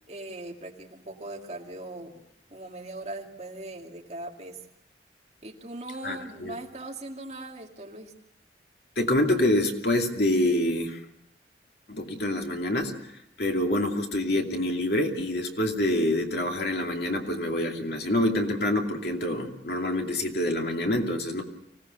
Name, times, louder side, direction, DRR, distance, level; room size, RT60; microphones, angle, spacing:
voice 1, 0.1-2.2 2.5-4.6 5.4-8.1, right 2 dB, 40° right, 1 dB, 2.3 m, -40 dB
voice 2, 6.0-6.6 9.0-11.0 11.9-12.9 13.4-21.4, left 1 dB, 65° left, 2 dB, 2.6 m, -26 dB
25.0 x 17.5 x 6.8 m, 0.77 s
head